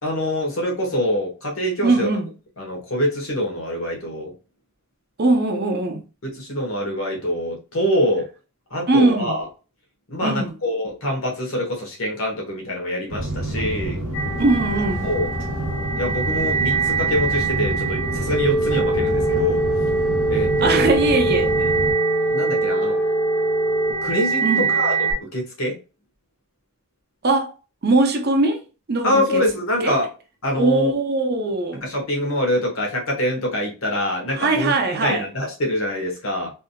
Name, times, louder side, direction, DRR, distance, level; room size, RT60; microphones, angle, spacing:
voice 1, 0.0-2.2 2.6-4.3 6.2-8.3 8.7-9.5 10.1-14.0 15.0-15.3 16.0-19.6 20.3-20.9 22.3-23.0 24.0-25.8 29.0-30.1 30.4-30.9 31.8-34.7 35.0-36.5, equal, 65° left, 1.1 m, -24 dB
voice 2, 1.8-2.3 5.2-6.0 8.9-9.4 10.2-10.5 14.4-15.1 20.6-21.7 24.4-24.7 27.2-27.5 27.8-28.6 28.9-29.4 29.8-30.0 30.5-31.8 34.3-35.3, right 2 dB, 45° right, 0.5 m, -20 dB
sound 1, 13.1-21.9, right 1 dB, 75° right, 0.8 m, -28 dB
sound 2, 14.1-25.1, right 5 dB, 85° left, 1.7 m, -26 dB
sound 3, 18.3-23.9, right 2 dB, 40° left, 0.7 m, -22 dB
3.4 x 2.7 x 2.2 m
head